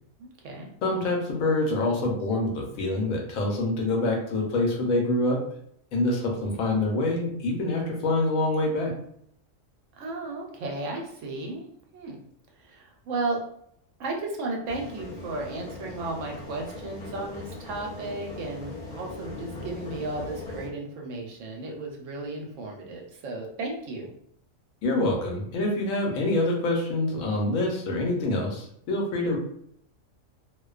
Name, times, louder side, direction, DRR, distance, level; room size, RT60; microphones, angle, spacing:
voice 1, 0.2-0.7 10.0-11.7 11.9-12.2 12.6-13.4 14.0-24.1, right 2 dB, 70° right, 0 dB, 0.9 m, -34 dB
voice 2, 0.8-5.4 5.9-8.9 24.8-29.4, left 2 dB, 85° left, 0 dB, 1.1 m, -26 dB
sound 1, 14.7-20.7, left 2 dB, 60° left, 0.4 m, -40 dB
2.5 x 2.2 x 2.3 m, 0.69 s
omnidirectional pair, 1.4 m